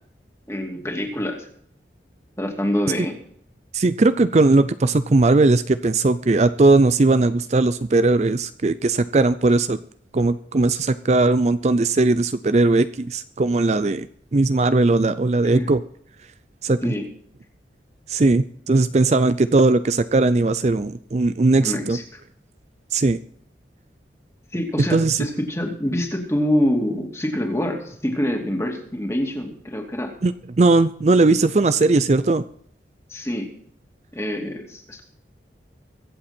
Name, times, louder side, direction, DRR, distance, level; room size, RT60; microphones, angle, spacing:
voice 1, 0.5-1.5 2.4-3.2 15.6-15.7 16.8-17.0 21.6-22.2 24.5-30.1 33.1-33.5 34.1-35.0, left 1 dB, 15° left, 2 dB, 2.5 m, -25 dB
voice 2, 3.7-9.8 10.1-14.1 14.3-15.8 16.6-16.9 18.1-22.0 22.9-23.2 24.9-25.3 30.2-32.4, right 3 dB, 40° right, 13 dB, 0.4 m, -18 dB
23.5 x 7.9 x 4.4 m, 0.64 s
head